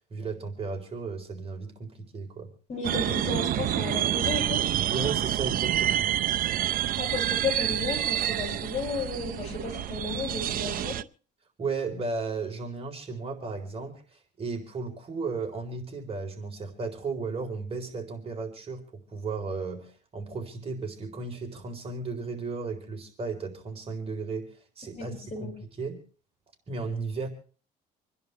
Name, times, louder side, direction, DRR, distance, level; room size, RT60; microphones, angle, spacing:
voice 1, 0.1-2.5 4.9-6.1 11.6-25.5 25.8-26.0 26.7-27.3, right 4 dB, 35° right, 3 dB, 4.2 m, -35 dB
voice 2, 2.7-4.6 7.0-11.0 25.0-25.5, left 4 dB, 40° left, 3 dB, 7.1 m, -33 dB
sound 1, 2.8-11.0, right 12 dB, 55° right, 0.7 m, -28 dB
27.5 x 11.0 x 3.4 m, 0.41 s
cardioid pair, 110°, 17 cm